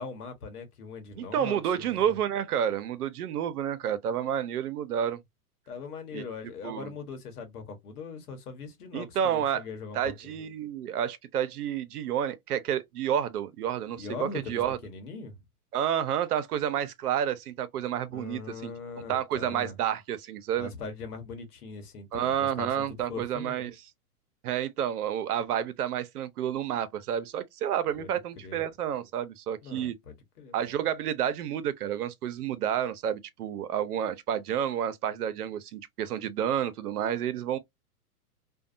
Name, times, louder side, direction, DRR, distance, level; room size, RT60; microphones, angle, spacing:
voice 1, 0.0-2.0 5.7-10.4 14.0-15.4 18.1-19.8 20.6-23.7 28.0-28.6 29.6-30.5, left 4 dB, 75° left, 1.2 m, -41 dB
voice 2, 1.2-5.2 6.1-6.2 6.6-6.9 8.9-9.6 9.9-14.8 15.7-18.7 19.1-20.7 22.1-23.7 24.4-29.9 30.5-37.6, right 9 dB, 80° right, 0.7 m, -30 dB
2.6 x 2.2 x 2.5 m
hypercardioid pair, 130°, 46 cm